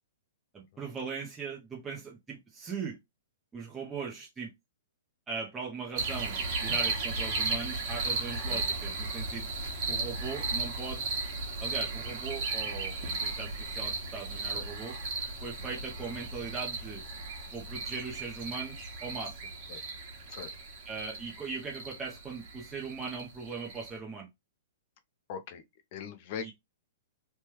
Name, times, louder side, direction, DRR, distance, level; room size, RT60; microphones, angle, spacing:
voice 1, 0.5-3.0 3.5-4.5 5.3-9.4 9.9-11.0 11.6-15.0 15.4-17.0 17.5-19.4 20.9-24.3 26.4-26.5, right 5 dB, 10° right, 0.6 m, -39 dB
sound 1, 6.0-23.9, right 3 dB, 40° right, 1.2 m, -35 dB
voice 2, 25.3-25.6 25.9-26.5, left 7 dB, 40° left, 0.5 m, -41 dB
3.2 x 2.2 x 3.0 m
hypercardioid pair, 155°, 0 cm